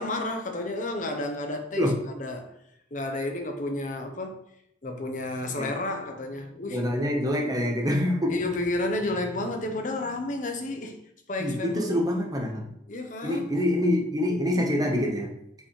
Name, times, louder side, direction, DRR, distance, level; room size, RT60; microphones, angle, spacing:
voice 1, 0.0-2.6 2.9-4.4 4.8-6.8 8.3-11.0 11.3-12.0 12.9-13.5, left 2 dB, 45° left, 4 dB, 0.9 m, -31 dB
voice 2, 6.7-8.4 11.4-12.7 13.2-15.3, left 1 dB, 20° right, 1 dB, 1.1 m, -26 dB
5.9 x 5.5 x 3.3 m, 0.76 s
head